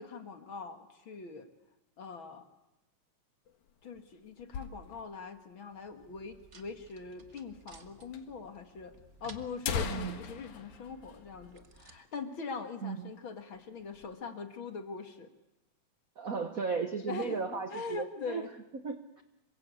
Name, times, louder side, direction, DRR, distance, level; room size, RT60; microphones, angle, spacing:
voice 1, 0.0-1.5 2.0-2.5 3.8-8.9 9.2-15.3 17.1-18.5, left 4 dB, 45° left, 7 dB, 2.4 m, -42 dB
sound 1, 3.5-5.3 5.6-5.7 5.9-6.0 6.7-6.8 7.7-7.8 8.1-8.2 9.0-9.1 9.4-12.0 12.3-12.5 12.9-13.1 13.6-14.1, left 6 dB, 90° left, 3.1 m, -40 dB
sound 2, 5.7-12.0, right 3 dB, 30° right, 1.4 m, -57 dB
voice 2, 9.8-10.2 12.8-13.1 16.2-18.4 18.7-19.2, right 5 dB, 80° right, 9 dB, 0.7 m, -35 dB
27.5 x 23.5 x 8.5 m, 0.92 s
omnidirectional pair, 3.3 m